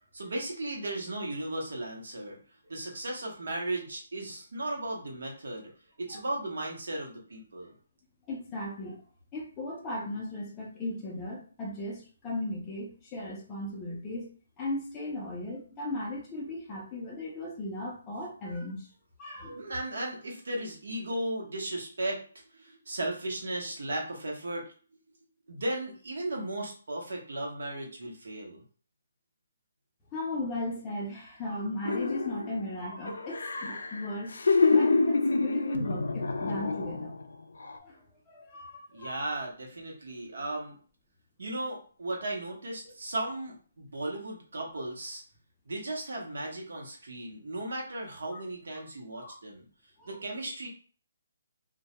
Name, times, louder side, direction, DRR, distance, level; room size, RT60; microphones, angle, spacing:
voice 1, 0.1-2.4 2.7-5.7 6.0-7.7 19.5-22.2 22.5-24.6 25.5-28.6 38.9-40.8 41.4-45.2 45.7-49.6 50.0-50.7, right 1 dB, 65° right, -1 dB, 0.8 m, -36 dB
voice 2, 8.3-9.0 9.3-14.3 14.6-18.9 19.2-19.6 30.1-34.4 34.7-37.1 37.6-39.4 48.3-48.4 49.1-49.4 50.0-50.2, left 1 dB, 10° left, -3 dB, 0.4 m, -37 dB
sound 1, 31.8-32.7 33.1-37.2 37.6-37.8, left 3 dB, 85° left, 0.3 m, -27 dB
2.2 x 2.0 x 2.8 m, 0.42 s
hypercardioid pair, 180°, 0 cm